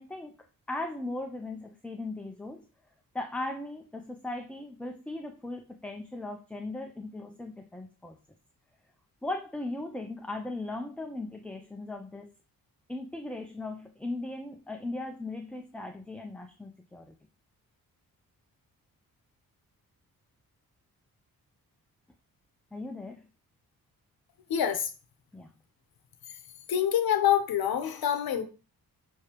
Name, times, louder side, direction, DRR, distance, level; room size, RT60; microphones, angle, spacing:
voice 1, 0.0-2.7 3.1-8.2 9.2-12.3 12.9-17.1 22.7-23.2 25.3-25.5, left 2 dB, 5° left, 0.4 m, -38 dB
voice 2, 24.5-24.9 26.7-28.5, left 10 dB, 85° left, 0.9 m, -26 dB
6.4 x 5.9 x 2.9 m
wide cardioid pair, 180°, 36 cm